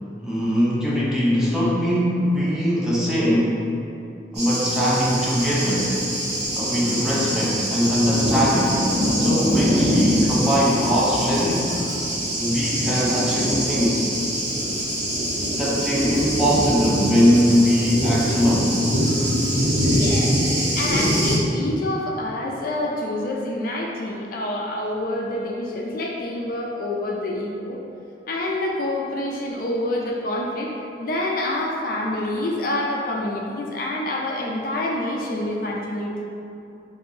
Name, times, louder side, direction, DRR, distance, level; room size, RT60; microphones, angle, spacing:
voice 1, 0.2-3.6 4.3-6.0 6.6-8.8 9.2-11.8 12.4-14.1 15.5-18.7, equal, 5° right, -7 dB, 0.6 m, -21 dB
Thunder, 4.3-21.3, equal, 70° right, 1.1 m, -23 dB
voice 2, 19.8-20.4 20.8-27.8 28.3-30.7 31.0-36.2, left 1 dB, 50° left, -2 dB, 0.4 m, -27 dB
4.5 x 2.6 x 2.7 m, 2.7 s
head